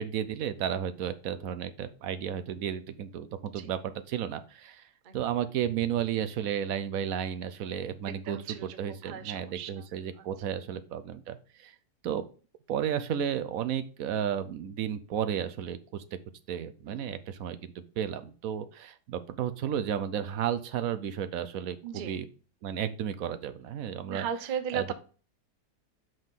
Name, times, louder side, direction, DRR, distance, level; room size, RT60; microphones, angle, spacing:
voice 1, 0.0-4.8 5.1-11.7 12.0-12.3 12.7-16.2 16.5-22.3 22.6-24.3 24.7-24.9, right 9 dB, 65° right, 12 dB, 0.9 m, -33 dB
voice 2, 8.1-9.9 10.2-10.6 16.9-17.1 21.8-22.2 24.0-24.9, right 8 dB, 80° right, 12 dB, 0.4 m, -37 dB
5.8 x 5.3 x 3.6 m, 0.37 s
omnidirectional pair, 1.8 m